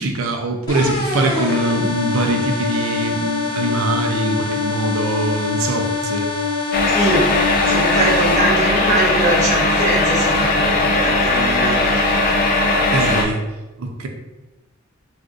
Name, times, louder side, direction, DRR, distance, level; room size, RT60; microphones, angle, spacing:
voice 1, 0.0-6.3 12.9-13.4 13.8-14.1, right 2 dB, 80° right, 4 dB, 0.5 m, -22 dB
sound 1, 0.7-8.4, left 4 dB, 20° left, 0.9 m, -24 dB
sound 2, 6.7-13.2, left 2 dB, 45° left, 0.4 m, -18 dB
voice 2, 6.9-7.3 7.7-11.8 13.0-13.3, right 2 dB, 35° right, -3 dB, 0.6 m, -22 dB
2.6 x 2.4 x 3.7 m, 1.1 s
head